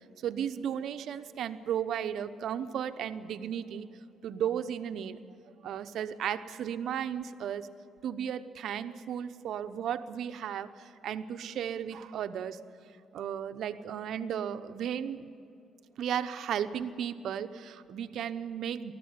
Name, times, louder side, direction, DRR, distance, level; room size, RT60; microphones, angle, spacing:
voice 1, 0.2-3.9 4.2-5.2 5.5-7.7 8.0-12.6 13.1-15.3 16.0-18.9, right 9 dB, 75° right, 10 dB, 0.9 m, -35 dB
19.5 x 14.0 x 9.6 m, 2.7 s
cardioid pair, 90°, 0 cm